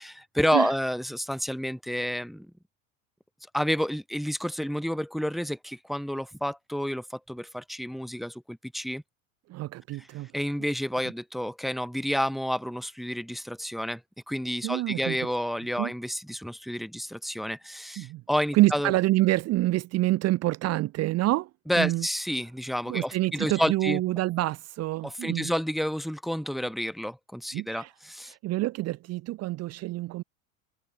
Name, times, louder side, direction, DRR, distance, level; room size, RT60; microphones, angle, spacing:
voice 1, 0.3-2.5 3.5-9.0 10.3-14.0 14.3-18.9 21.7-24.0 25.0-28.3, equal, ahead, 0.5 m, -30 dB
voice 2, 9.5-10.3 14.6-15.3 15.8-15.9 18.0-18.2 18.5-21.5 21.8-22.1 22.9-25.5 27.5-27.9 28.3-30.2, right 17 dB, 35° right, 1.1 m, -27 dB
figure-of-eight pair, 85°, 42 cm